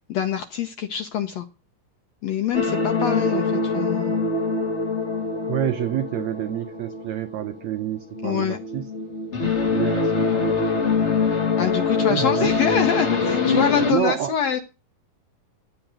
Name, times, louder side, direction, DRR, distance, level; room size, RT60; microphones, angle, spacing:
voice 1, 0.1-1.5 2.2-4.2 8.2-8.6 11.6-14.6, left 8 dB, 75° left, 1.6 m, -25 dB
sound 1, 2.5-13.9, left 4 dB, 40° left, 1.0 m, -24 dB
voice 2, 5.4-8.9 9.7-10.6 12.1-12.5 13.9-14.3, right 13 dB, 85° right, 1.5 m, -28 dB
13.0 x 7.9 x 6.0 m
omnidirectional pair, 4.1 m